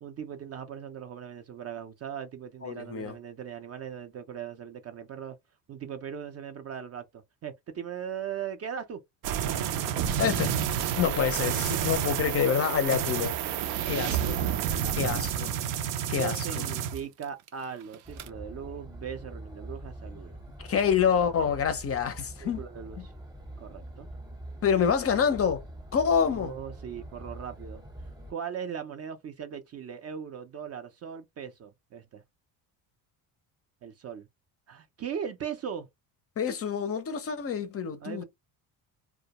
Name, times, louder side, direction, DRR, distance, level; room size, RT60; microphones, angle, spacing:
voice 1, 0.0-5.4 5.7-9.0 13.8-15.5 16.2-20.4 22.4-23.1 23.6-24.1 26.2-27.8 28.3-32.2 33.8-34.3 34.7-35.9 38.0-38.2, right 8 dB, 35° right, 0.4 m, -39 dB
voice 2, 2.6-3.1 10.2-10.6 11.0-13.4 13.9-14.4 15.0-15.5 16.1-16.6 20.6-22.6 23.0-23.1 24.6-25.6 25.9-26.5 36.4-38.2, left 7 dB, 30° left, 0.5 m, -27 dB
sound 1, 9.2-17.5 17.8-18.3, right 9 dB, 85° right, 0.6 m, -29 dB
sound 2, 18.0-28.3, right 1 dB, 10° right, 0.7 m, -44 dB
2.2 x 2.1 x 2.8 m
cardioid pair, 100°, 46 cm